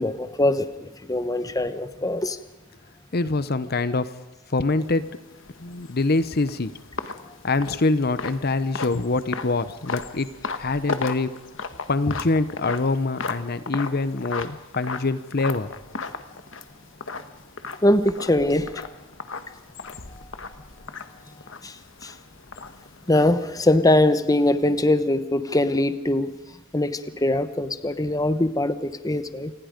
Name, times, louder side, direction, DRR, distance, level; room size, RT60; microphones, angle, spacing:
voice 1, 0.0-2.4 17.8-18.9 21.6-21.8 22.0-22.1 23.1-26.3 26.7-29.5, left 1 dB, 20° left, 11 dB, 1.0 m, -22 dB
voice 2, 3.1-4.1 4.5-5.1 5.6-6.7 7.0-7.1 7.4-10.3 10.6-11.4 11.9-15.7, left 3 dB, 50° left, 13 dB, 0.8 m, -24 dB
sound 1, 4.8-23.6, left 4 dB, 65° left, 1.4 m, -36 dB
27.5 x 20.0 x 5.2 m, 1.0 s
head